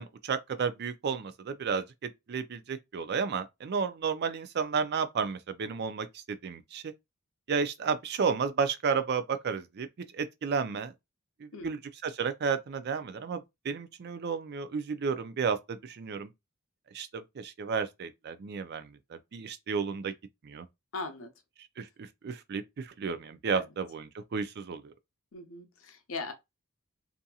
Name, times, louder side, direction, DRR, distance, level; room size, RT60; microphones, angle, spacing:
voice 1, 0.0-6.9 7.5-9.9 10.2-10.9 11.4-16.3 16.9-20.1 20.4-20.7 21.8-24.9, right 5 dB, 50° right, 0.4 m, -32 dB
voice 2, 20.9-21.3 23.5-23.7 25.3-26.3, left 3 dB, 70° left, 0.7 m, -39 dB
2.7 x 2.5 x 2.3 m
head